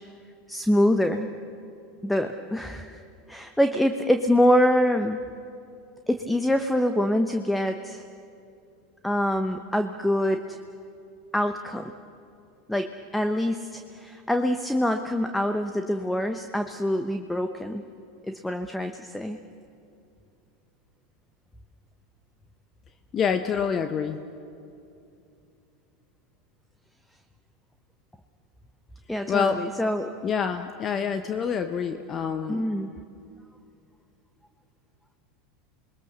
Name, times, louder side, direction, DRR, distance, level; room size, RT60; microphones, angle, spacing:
voice 1, 0.5-1.3 2.0-3.0 3.3-5.2 6.1-8.0 9.0-10.6 11.3-11.9 12.7-17.8 18.2-19.4 29.1-30.2 32.5-32.9, left 1 dB, 5° left, 7 dB, 1.0 m, -25 dB
voice 2, 23.1-24.2 29.3-29.6 30.2-32.6, left 7 dB, 35° left, 8 dB, 1.1 m, -26 dB
28.0 x 21.5 x 6.8 m, 2.6 s
hypercardioid pair, 90°, 0 cm